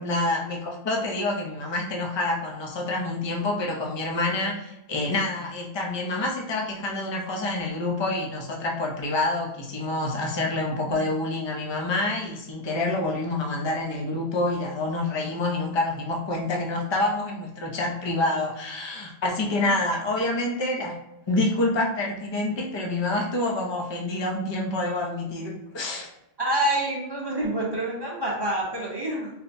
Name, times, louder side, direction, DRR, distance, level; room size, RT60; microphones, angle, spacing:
voice 1, 0.0-21.0 21.3-26.1, left 2 dB, 35° left, 0 dB, 0.4 m, -27 dB
voice 2, 26.4-29.3, right 1 dB, 25° right, -5 dB, 0.7 m, -27 dB
4.1 x 2.1 x 2.5 m, 0.87 s
omnidirectional pair, 1.0 m